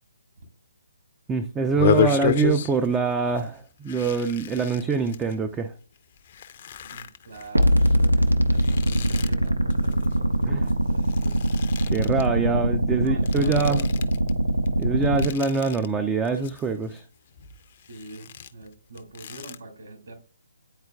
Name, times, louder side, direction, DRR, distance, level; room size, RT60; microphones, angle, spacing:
voice 1, 1.3-5.7 10.5-10.6 11.9-13.8 14.8-17.0, right 4 dB, 10° right, 0.4 m, -24 dB
sound 1, 1.6-3.0 3.3-3.5 3.9-5.3 6.0-10.7 11.0-12.3 13.1-14.3 14.7-15.9 16.2-17.0 17.3-19.6, left 9 dB, 40° left, 0.6 m, -31 dB
voice 2, 6.8-11.4 12.8-14.1 17.8-20.1, right 2 dB, 60° right, 2.2 m, -43 dB
sound 2, 7.6-15.3, right 1 dB, 85° right, 0.8 m, -22 dB
9.6 x 4.3 x 2.3 m
figure-of-eight pair, 140°, 0 cm